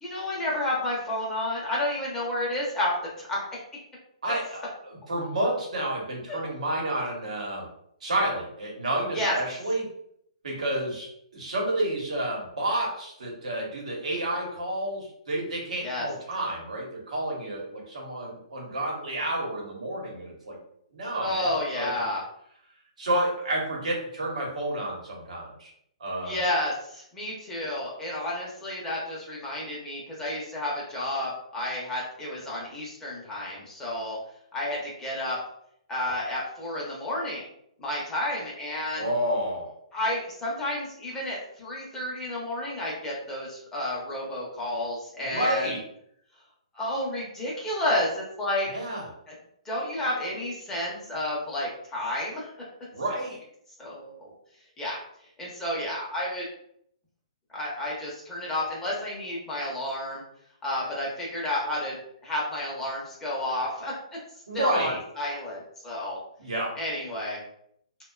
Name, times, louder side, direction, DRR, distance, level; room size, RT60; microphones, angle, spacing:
voice 1, 0.0-2.9 3.2-3.6 6.3-6.4 9.1-9.4 15.8-16.1 21.2-22.2 26.2-34.2 34.5-35.4 35.9-37.5 37.8-39.1 39.9-45.7 46.7-48.7 49.6-52.5 53.8-54.3 54.8-55.0 55.4-56.4 57.5-60.2 60.6-62.0 62.2-64.0 64.5-66.2 66.8-67.4, left 1 dB, 10° left, -5 dB, 0.6 m, -31 dB
voice 2, 4.2-7.6 8.0-9.9 10.4-20.6 20.9-21.9 23.0-25.7 26.0-26.4 38.9-39.6 45.3-45.8 48.7-49.1 52.9-53.4 64.5-65.0 66.4-66.8, right 1 dB, 80° right, -2 dB, 0.9 m, -30 dB
2.5 x 2.2 x 2.3 m, 0.71 s
hypercardioid pair, 150°, 4 cm